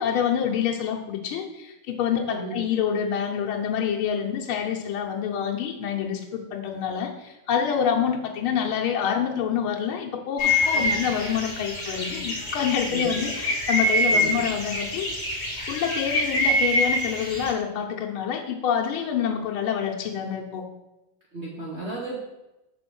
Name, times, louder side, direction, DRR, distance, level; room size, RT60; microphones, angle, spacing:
voice 1, 0.0-15.1 15.7-20.7, left 8 dB, 85° left, 0 dB, 1.7 m, -27 dB
voice 2, 2.2-2.6 10.7-11.0 12.9-13.1 14.1-14.4 21.3-22.2, right 2 dB, 40° right, -5 dB, 1.2 m, -34 dB
sound 1, 10.4-17.5, left 1 dB, 30° left, 2.0 m, -25 dB
7.1 x 3.9 x 6.1 m, 0.97 s
omnidirectional pair, 2.3 m